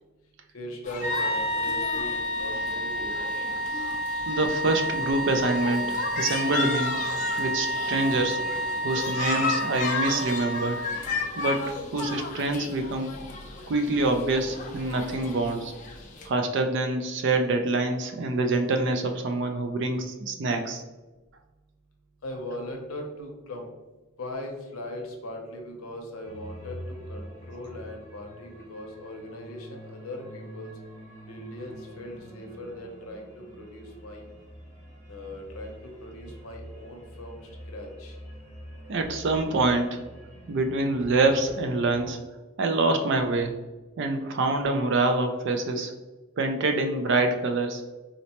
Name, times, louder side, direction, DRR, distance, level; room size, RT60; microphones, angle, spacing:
voice 1, 0.5-2.1 2.4-3.2 22.2-23.7 24.2-30.7 31.3-34.2 35.1-38.2, left 1 dB, 80° left, 2 dB, 0.7 m, -39 dB
sound 1, 0.8-16.3, left 4 dB, 35° left, 0.4 m, -35 dB
sound 2, 1.0-11.0, equal, 80° right, 1.2 m, -30 dB
voice 2, 4.3-6.9 7.4-8.4 8.8-10.8 11.4-13.1 13.7-15.7 16.3-20.8 38.9-40.0 40.5-42.2 42.6-43.6 44.0-45.9 46.4-47.8, right 2 dB, 55° right, 6 dB, 0.4 m, -26 dB
sound 3, 26.2-42.1, equal, 10° right, 0.9 m, -45 dB
3.9 x 2.1 x 2.8 m, 1.2 s
head